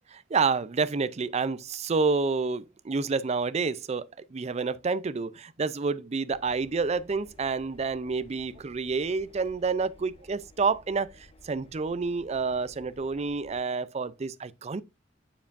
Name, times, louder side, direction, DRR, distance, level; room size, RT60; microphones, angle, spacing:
voice 1, 0.1-14.8, right 4 dB, 35° right, 0.4 m, -29 dB
Engine, 6.3-13.6, left 2 dB, 30° left, 1.1 m, -56 dB
7.2 x 7.0 x 2.5 m
head